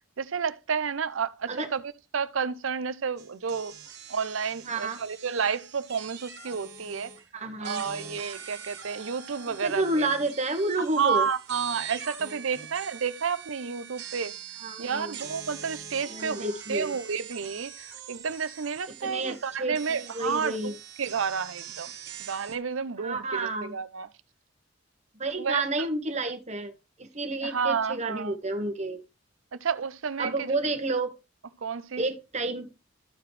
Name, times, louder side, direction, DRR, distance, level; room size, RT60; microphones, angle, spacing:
voice 1, 0.2-1.8 2.1-3.7 4.1-7.1 7.6-10.1 11.0-14.4 14.8-20.7 21.0-21.9 22.2-24.1 25.4-25.9 27.4-28.4 29.6-30.6 31.6-32.0, right 6 dB, 80° right, 0.6 m, -31 dB
sound 1, 3.2-7.3 7.6-22.6, right 8 dB, 60° right, 1.9 m, -43 dB
voice 2, 4.7-5.0 7.3-7.8 9.4-11.2 14.6-15.2 16.1-17.0 19.0-20.7 23.0-23.7 25.1-26.7 27.0-29.0 30.2-31.1 32.0-32.7, right 2 dB, 35° right, 1.4 m, -30 dB
14.0 x 4.9 x 3.3 m
head